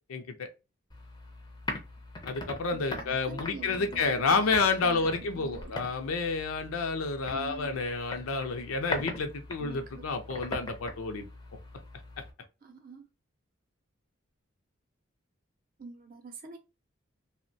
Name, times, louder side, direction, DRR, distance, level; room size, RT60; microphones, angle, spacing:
voice 1, 0.1-0.5 2.2-11.3, left 4 dB, 85° left, 0.5 m, -30 dB
sound 1, 0.9-12.3, left 2 dB, 20° left, 0.4 m, -42 dB
voice 2, 2.7-5.9 7.3-7.8 9.6-10.1 12.6-13.1 15.8-16.6, right 4 dB, 45° right, 0.5 m, -46 dB
2.9 x 2.1 x 2.6 m
head